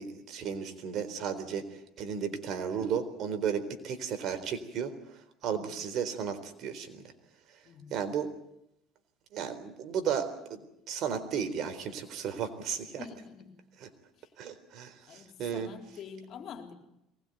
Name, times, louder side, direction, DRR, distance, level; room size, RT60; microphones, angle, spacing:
voice 1, 0.0-1.6 2.0-4.9 5.4-7.0 7.9-8.3 9.3-10.6 10.9-13.0 14.4-15.7, right 7 dB, 55° right, 9 dB, 4.0 m, -34 dB
voice 2, 5.4-5.8 7.6-8.0 13.0-13.5 14.1-14.3 15.1-16.7, left 7 dB, 50° left, 5 dB, 4.0 m, -46 dB
23.0 x 20.0 x 9.4 m, 0.83 s
cardioid pair, 120°, 0 cm